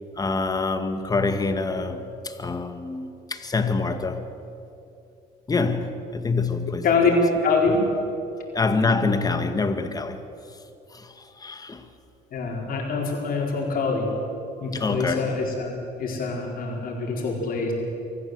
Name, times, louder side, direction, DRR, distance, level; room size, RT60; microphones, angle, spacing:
voice 1, 0.2-4.2 5.5-7.1 8.5-10.2 10.9-11.9 14.7-15.3, left 3 dB, 20° left, 1.7 m, -26 dB
voice 2, 7.4-7.8 12.3-14.1 14.6-15.7 16.0-17.7, left 4 dB, 60° left, 4.6 m, -24 dB
24.5 x 14.5 x 8.0 m
cardioid pair, 110°, 17 cm